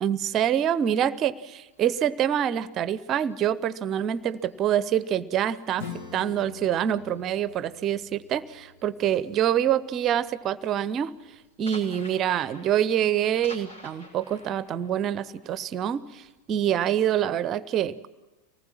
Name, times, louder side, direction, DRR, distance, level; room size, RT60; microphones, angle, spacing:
voice 1, 0.0-5.9 6.1-11.1 11.6-18.1, right 10 dB, 30° right, 18 dB, 0.8 m, -26 dB
sound 1, 1.6-5.4 5.8-9.2 9.4-9.8 10.1-16.5, left 1 dB, 70° left, 6.0 m, -50 dB
Acoustic guitar / Strum, 5.8-11.0, left 6 dB, 50° left, 2.0 m, -45 dB
25.0 x 19.5 x 7.4 m, 1.1 s
figure-of-eight pair, 90°, 0 cm